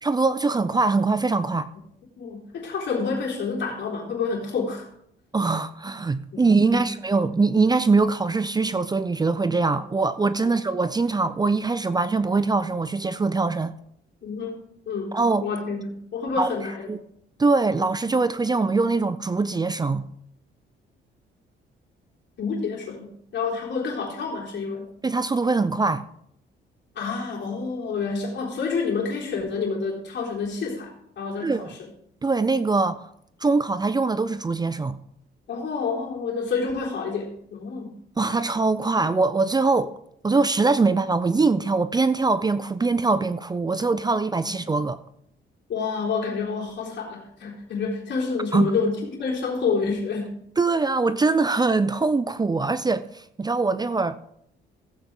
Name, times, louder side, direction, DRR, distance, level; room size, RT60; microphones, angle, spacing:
voice 1, 0.0-1.7 5.3-13.7 15.1-15.5 16.4-16.5 16.9-17.0 17.4-20.0 25.0-26.0 31.4-31.7 32.2-33.1 33.4-35.0 38.2-39.9 40.2-45.0 48.5-48.7 50.6-54.2, right 3 dB, 20° right, 0.5 m, -22 dB
voice 2, 2.2-4.9 6.3-6.9 14.2-14.6 14.9-16.9 22.4-24.9 27.0-31.8 35.5-38.0 44.4-44.5 45.7-50.4, left 5 dB, 65° left, 3.8 m, -28 dB
15.5 x 8.1 x 3.7 m
cardioid pair, 90°, 20 cm